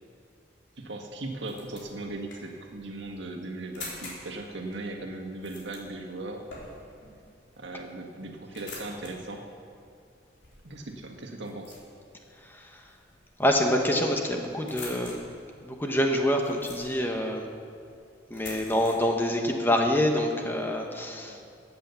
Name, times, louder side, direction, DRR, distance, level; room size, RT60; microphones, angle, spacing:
voice 1, 0.8-6.5 7.6-9.5 10.6-11.8 21.3-21.4, right 2 dB, 70° right, 2 dB, 1.7 m, -38 dB
sound 1, 1.1-19.0, left 3 dB, 70° left, 3.9 m, -48 dB
voice 2, 12.4-12.8 13.4-15.2 15.6-17.5 18.3-21.4, left 1 dB, 10° left, 2 dB, 1.1 m, -26 dB
17.0 x 8.5 x 7.1 m, 2.4 s
head